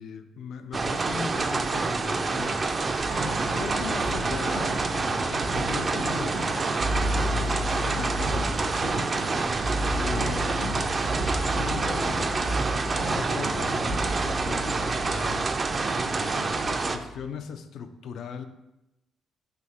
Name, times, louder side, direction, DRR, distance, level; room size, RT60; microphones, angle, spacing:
voice 1, 0.0-2.8 3.5-9.1 9.9-10.9 11.6-12.7 13.1-15.5 16.0-18.4, left 6 dB, 70° left, 9 dB, 0.3 m, -39 dB
sound 1, 0.7-17.0, right 3 dB, 40° right, 0.3 m, -27 dB
sound 2, 3.0-17.2, equal, 85° right, 1.2 m, -33 dB
3.4 x 2.8 x 4.0 m, 0.93 s
supercardioid pair, 60°, 0 cm